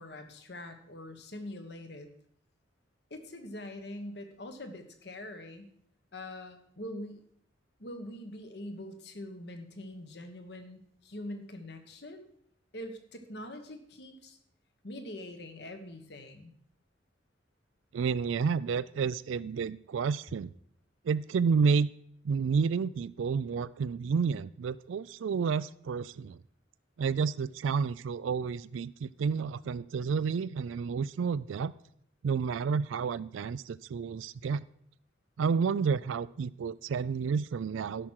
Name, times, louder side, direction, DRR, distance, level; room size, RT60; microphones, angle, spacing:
voice 1, 0.0-2.1 3.1-5.7 6.1-7.2 7.8-12.3 12.7-14.4 14.8-16.5, left 1 dB, 60° left, 7 dB, 1.3 m, -43 dB
voice 2, 17.9-20.5 21.0-21.9 22.2-26.4 27.0-31.7 32.2-34.6 35.4-38.1, right 5 dB, 90° right, 18 dB, 0.4 m, -30 dB
12.5 x 5.9 x 6.3 m, 0.66 s
head